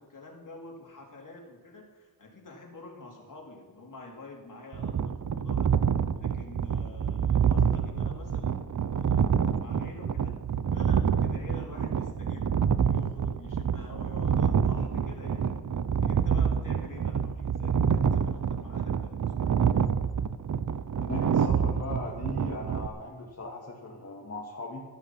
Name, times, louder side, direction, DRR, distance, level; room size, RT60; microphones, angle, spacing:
voice 1, 0.0-5.7 6.2-9.2 9.5-10.4 10.7-12.6 12.9-19.7, left 2 dB, 55° left, 0 dB, 3.8 m, -48 dB
sound 1, 4.7-22.9, right 7 dB, 50° right, 0.8 m, -27 dB
voice 2, 20.9-24.8, left 2 dB, 40° left, -3 dB, 2.4 m, -38 dB
13.5 x 13.0 x 5.9 m, 1.5 s
cardioid pair, 65°, 38 cm